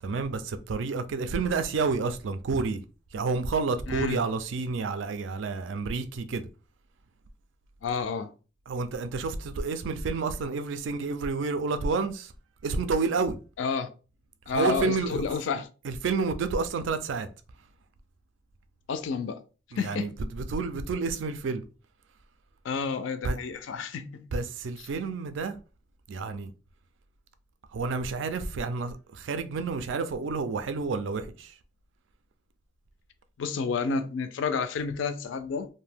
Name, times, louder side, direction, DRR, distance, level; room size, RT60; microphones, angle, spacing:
voice 1, 0.0-2.8 3.1-6.5 8.7-12.3 12.6-13.4 14.5-15.2 15.8-17.3 19.7-21.6 23.2-23.4 24.3-25.6 26.1-26.5 27.7-31.5, right 4 dB, 70° right, 0.3 m, -29 dB
voice 2, 3.9-4.2 7.8-8.3 13.6-13.9 14.5-15.7 18.9-19.4 19.8-20.1 22.6-24.3 33.4-35.7, left 5 dB, 70° left, 0.3 m, -30 dB
2.6 x 2.1 x 3.3 m
head